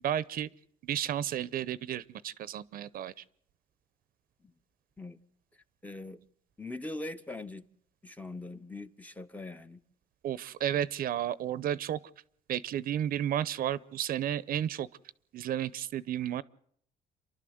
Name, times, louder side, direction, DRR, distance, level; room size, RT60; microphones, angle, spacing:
voice 1, 0.0-0.5 0.8-3.2 10.2-12.0 12.5-14.9 15.3-16.4, right 10 dB, 60° right, 0.7 m, -32 dB
voice 2, 5.8-6.2 6.6-7.6 8.0-9.8, left 2 dB, 10° left, 0.8 m, -41 dB
28.0 x 12.0 x 7.8 m
cardioid pair, 110°, 17 cm